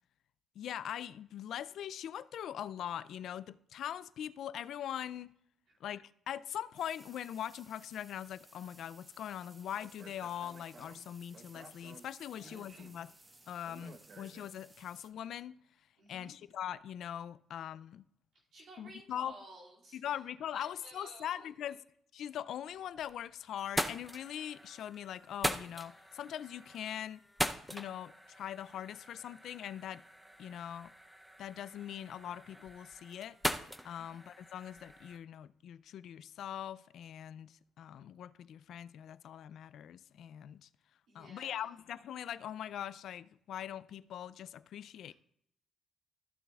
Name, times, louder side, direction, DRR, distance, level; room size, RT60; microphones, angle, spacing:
voice 1, 0.6-5.3 5.8-13.1 13.5-15.5 16.1-18.0 18.8-19.4 19.9-21.8 22.1-27.2 27.7-30.0 30.4-30.9 31.4-33.4 33.8-40.7 41.1-45.1, left 10 dB, 75° left, 0.3 m, -42 dB
sound 1, 6.8-15.1, right 2 dB, 20° right, 1.1 m, -60 dB
Speech, 9.8-14.9, right 4 dB, 45° right, 0.8 m, -56 dB
voice 2, 12.3-12.8 16.0-16.3 18.5-20.2 20.5-21.7 34.0-34.2 41.1-41.8, right 2 dB, 75° right, 2.5 m, -55 dB
sound 2, 22.7-23.2 23.6-35.2, equal, ahead, 0.6 m, -41 dB
14.0 x 6.9 x 2.4 m
cardioid pair, 90°, 0 cm